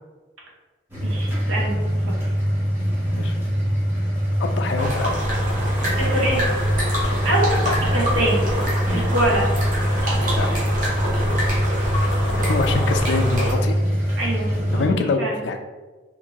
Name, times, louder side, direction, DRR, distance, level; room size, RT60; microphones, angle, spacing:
sound 1, 0.9-14.9, equal, 10° right, 0.7 m, -23 dB
voice 1, 1.0-2.3 6.0-6.5 7.2-7.5 7.9-8.5 8.9-9.5 14.2-15.4, right 1 dB, 85° right, -3 dB, 0.8 m, -25 dB
voice 2, 4.4-5.1 7.7-7.8 10.3-10.5 12.3-13.8 14.7-15.6, left 4 dB, 65° left, 5 dB, 0.3 m, -24 dB
sound 2, 4.8-13.5, equal, 45° right, 0.8 m, -26 dB
2.6 x 2.5 x 2.8 m, 1.3 s
head